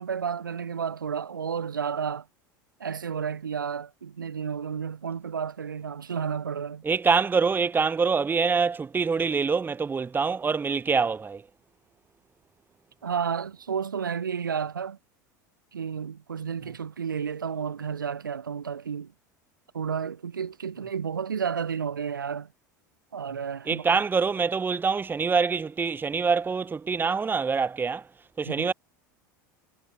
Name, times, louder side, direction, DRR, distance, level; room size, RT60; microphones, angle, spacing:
voice 1, 0.0-2.2 2.8-6.8 13.0-15.0 15.7-19.1 19.7-22.5 23.1-24.0 28.4-28.7, right 7 dB, 90° right, 1.7 m, -31 dB
voice 2, 6.8-11.4 23.7-28.1 28.4-28.7, right 5 dB, 20° right, 0.8 m, -25 dB
hypercardioid pair, 80°, 11 cm